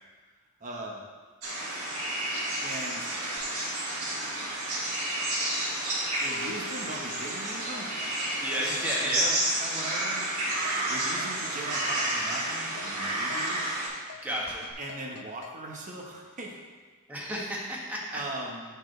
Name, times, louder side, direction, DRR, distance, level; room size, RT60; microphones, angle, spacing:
voice 1, 0.6-1.0 2.6-3.1 4.5-4.8 6.2-7.9 8.5-10.3 10.9-13.6 14.8-16.6 18.1-18.6, right 1 dB, 35° right, -1 dB, 1.2 m, -39 dB
sound 1, 1.4-13.9, right 1 dB, 85° right, 2.2 m, -31 dB
sound 2, 3.4-3.5 3.9-9.6 9.8-10.3 10.6-11.8 12.2-14.7, left 4 dB, 25° left, 2.0 m, -50 dB
sound 3, 7.2-15.6, left 7 dB, 80° left, 0.6 m, -47 dB
voice 2, 8.4-9.3 14.2-14.7 17.1-18.2, equal, 10° right, -4 dB, 1.4 m, -32 dB
13.0 x 4.6 x 3.3 m, 1.4 s
head